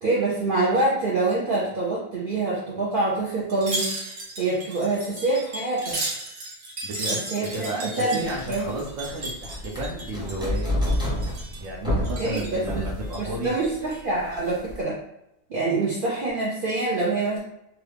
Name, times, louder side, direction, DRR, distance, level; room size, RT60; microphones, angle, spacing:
voice 1, 0.0-6.0 7.0-8.7 12.2-12.9 13.1-15.0 15.5-17.4, right 2 dB, 50° right, -6 dB, 0.7 m, -26 dB
Wind chime, 3.5-10.6 10.9-11.7 12.0-12.6 13.0-13.9 14.3-14.5, right 2 dB, 85° right, 1.4 m, -34 dB
voice 2, 6.8-10.7 11.6-13.5, right 1 dB, 70° right, -5 dB, 1.0 m, -33 dB
sound 1, 8.2-14.8, left 1 dB, 5° right, 0.6 m, -30 dB
3.0 x 2.4 x 3.3 m, 0.83 s
omnidirectional pair, 1.5 m